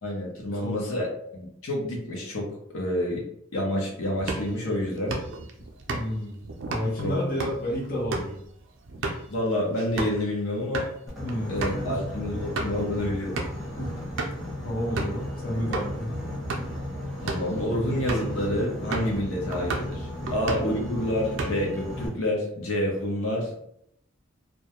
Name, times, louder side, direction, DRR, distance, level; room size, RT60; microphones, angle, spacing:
voice 1, 0.0-3.2 3.5-5.2 7.0-7.2 9.3-10.9 11.5-13.4 17.2-23.7, left 1 dB, 85° left, -2 dB, 0.7 m, -28 dB
sound 1, 4.2-10.2 10.6-10.9 11.3-11.4 11.6-11.8 12.3-12.8 13.4-13.7 14.2-14.5 15.0-15.2 15.7-15.9 16.4-16.8 17.1-17.5 18.1-18.4 18.9-19.2 19.5-20.0 20.3-20.8 21.1-21.8, right 3 dB, 60° right, 0.4 m, -33 dB
voice 2, 5.9-6.4 6.7-8.4 11.2-11.5 11.8-12.0 13.8-13.9 14.6-16.1 20.2-20.3, equal, 45° left, -4 dB, 0.7 m, -30 dB
Boat Water vehicle, 11.1-22.1, left 1 dB, ahead, 0.8 m, -35 dB
2.2 x 2.1 x 2.8 m, 0.71 s
head